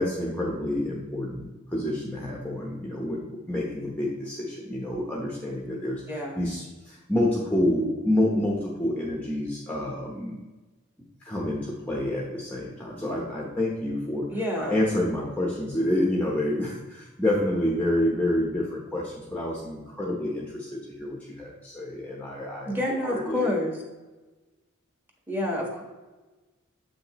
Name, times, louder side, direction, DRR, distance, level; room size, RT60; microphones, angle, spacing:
voice 1, 0.0-10.4 11.2-14.3 14.6-23.5, left 1 dB, 5° left, -3 dB, 1.0 m, -28 dB
voice 2, 6.1-6.4 14.3-14.8 22.7-23.7 25.3-25.8, left 1 dB, 10° right, 0 dB, 1.5 m, -28 dB
7.8 x 6.2 x 3.1 m, 1.2 s
head